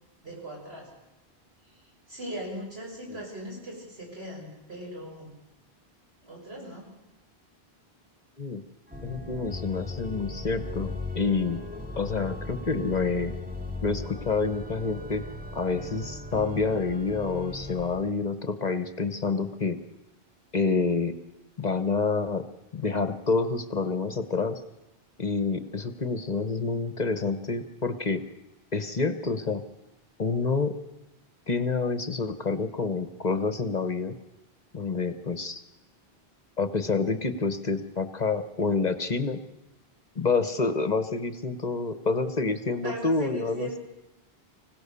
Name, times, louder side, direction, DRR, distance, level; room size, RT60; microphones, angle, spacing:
voice 1, 0.2-0.9 2.1-5.3 6.2-6.9 42.8-43.8, right 1 dB, 75° right, -2 dB, 6.9 m, -38 dB
Organ, 8.9-18.1, left 2 dB, 10° right, 1.9 m, -38 dB
voice 2, 9.0-11.6 12.0-13.3 13.8-15.2 15.5-19.8 20.5-21.2 21.6-22.4 22.7-24.6 25.2-28.2 28.7-29.6 30.2-30.8 31.5-34.1 34.7-35.6 36.6-39.4 40.1-43.8, left 4 dB, 45° left, 11 dB, 1.1 m, -28 dB
25.0 x 17.0 x 6.9 m, 0.97 s
omnidirectional pair, 1.1 m